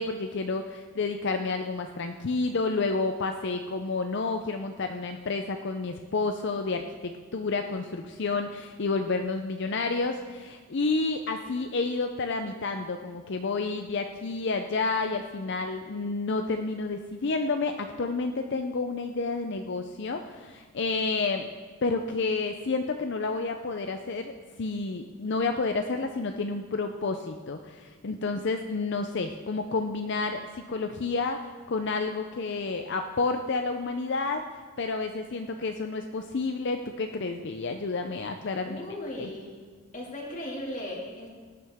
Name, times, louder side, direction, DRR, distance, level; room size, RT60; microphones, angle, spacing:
voice 1, 0.0-21.5 21.8-24.3 24.6-34.4 34.8-38.8 39.2-39.3, left 3 dB, 50° left, 6 dB, 0.5 m, -30 dB
voice 2, 38.6-39.6 39.9-41.3, left 1 dB, 35° left, -2 dB, 2.3 m, -37 dB
18.5 x 9.4 x 3.6 m, 1.4 s
head